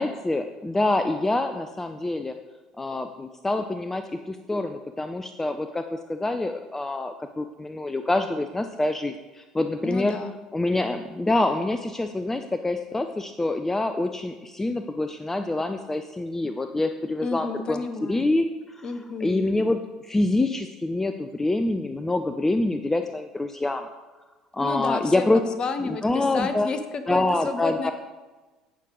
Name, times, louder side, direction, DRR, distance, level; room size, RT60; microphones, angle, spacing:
voice 1, 0.0-2.3 2.8-10.2 10.5-17.8 18.1-18.9 19.2-23.8 24.5-25.4 25.8-26.7 27.1-27.9, left 2 dB, 15° left, 8 dB, 0.6 m, -26 dB
voice 2, 9.8-10.3 17.2-18.2 18.8-19.5 24.6-27.9, left 4 dB, 40° left, 9 dB, 1.2 m, -31 dB
17.5 x 6.4 x 3.9 m, 1.2 s
figure-of-eight pair, 60°, 2 cm